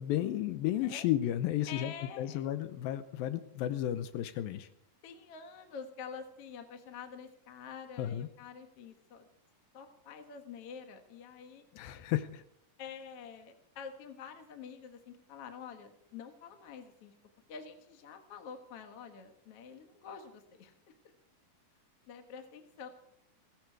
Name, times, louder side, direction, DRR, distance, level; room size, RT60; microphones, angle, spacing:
voice 1, 0.0-4.7 8.0-8.3 11.8-12.4, left 12 dB, 85° left, 10 dB, 2.5 m, -33 dB
voice 2, 1.7-2.5 5.0-9.3 9.7-11.6 12.8-17.1 17.5-20.7 22.1-22.9, left 6 dB, 55° left, 6 dB, 2.0 m, -47 dB
16.5 x 16.0 x 4.7 m, 0.71 s
omnidirectional pair, 4.0 m